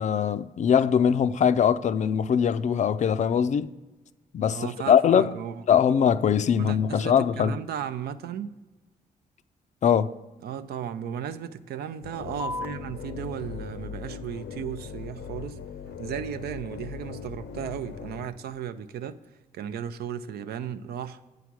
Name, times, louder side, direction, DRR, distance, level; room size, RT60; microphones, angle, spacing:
voice 1, 0.0-3.7 4.3-5.3 5.7-7.6 9.8-10.1, left 8 dB, 50° left, 0.4 m, -22 dB
voice 2, 4.5-5.9 6.6-8.6 10.4-15.6 16.0-19.2 19.5-21.2, right 9 dB, 85° right, 0.5 m, -35 dB
sound 1, 12.0-18.3, left 7 dB, 85° left, 0.7 m, -39 dB
sound 2, 12.4-19.4, left 2 dB, 10° right, 0.6 m, -45 dB
8.3 x 4.8 x 5.9 m
cardioid pair, 95°, 16 cm